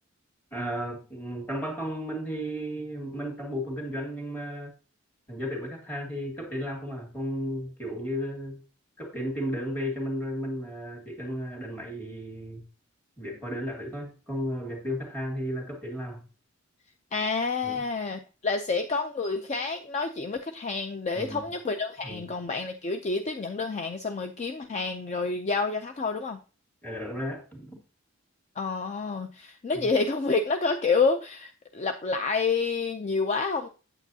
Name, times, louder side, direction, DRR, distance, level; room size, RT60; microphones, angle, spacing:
voice 1, 0.5-4.7 5.3-8.6 9.0-12.7 13.2-16.2 17.6-17.8 21.1-21.5 22.0-22.3 26.8-27.8 29.7-29.9, equal, 10° left, 2.0 m, -34 dB
voice 2, 17.1-26.4 28.6-33.7, left 4 dB, 35° left, 0.4 m, -28 dB
8.4 x 8.0 x 2.7 m
head